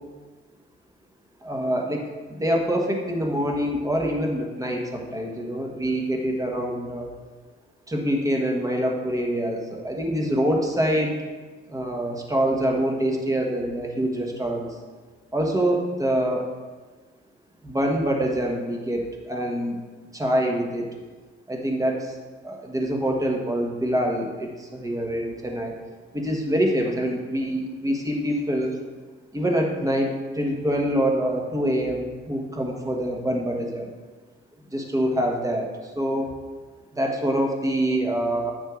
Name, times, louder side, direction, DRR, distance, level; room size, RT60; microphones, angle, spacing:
voice 1, 1.4-2.0 2.3-7.1 7.9-11.1 11.7-14.7 15.3-16.5 17.6-19.8 20.1-20.9 21.5-22.2 22.4-25.7 26.1-28.8 29.3-33.9 34.7-36.3 36.9-38.5, equal, 15° right, 0 dB, 1.2 m, -25 dB
9.2 x 6.3 x 2.5 m, 1.4 s
cardioid pair, 90°, 20 cm